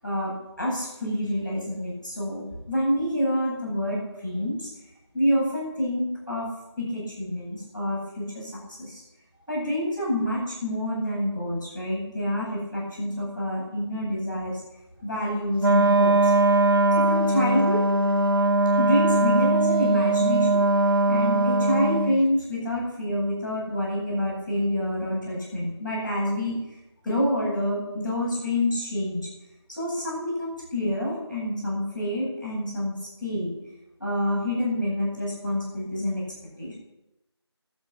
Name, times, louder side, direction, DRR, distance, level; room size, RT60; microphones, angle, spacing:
voice 1, 0.0-4.7 5.1-6.5 6.8-8.5 8.8-9.0 9.5-14.5 15.0-16.3 16.9-17.8 18.8-20.6 21.1-26.6 27.0-29.3 29.8-32.9 33.2-33.5 34.0-36.2 36.6-36.8, left 1 dB, 5° right, -16 dB, 7.6 m, -27 dB
Wind instrument woodwind instrument, 15.6-22.2, right 2 dB, 55° right, 1.1 m, -21 dB
21.0 x 8.5 x 6.3 m, 0.94 s
figure-of-eight pair, 170°, 15 cm